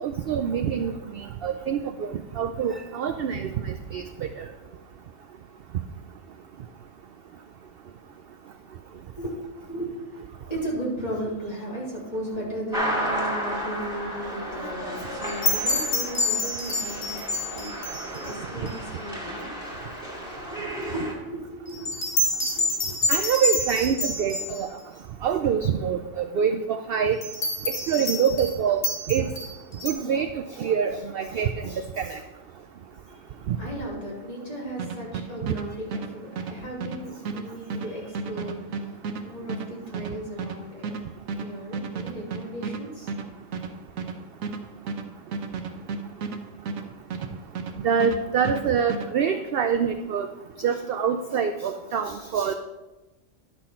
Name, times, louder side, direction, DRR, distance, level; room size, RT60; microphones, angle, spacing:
voice 1, 0.0-4.5 17.5-17.6 23.1-24.7 25.2-27.2 27.7-29.3 29.8-32.2 33.5-33.6 35.4-35.5 47.8-50.3 50.6-52.5, right 7 dB, 60° right, 6 dB, 0.6 m, -26 dB
voice 2, 9.2-17.3 17.5-17.7 18.1-19.5 19.7-22.1 22.6-22.9 33.1-40.9 41.3-43.1, right 1 dB, 30° left, -5 dB, 2.8 m, -36 dB
sound 1, 12.7-21.1, equal, 5° right, 2.2 m, -33 dB
sound 2, 15.2-18.4 18.7-18.8 21.7-24.6 27.2-28.5 28.8-29.9, left 2 dB, 80° left, 2.1 m, -27 dB
sound 3, 34.8-47.7 48.0-49.1, right 4 dB, 80° right, 1.2 m, -33 dB
11.0 x 6.3 x 4.3 m, 1.1 s
omnidirectional pair, 1.4 m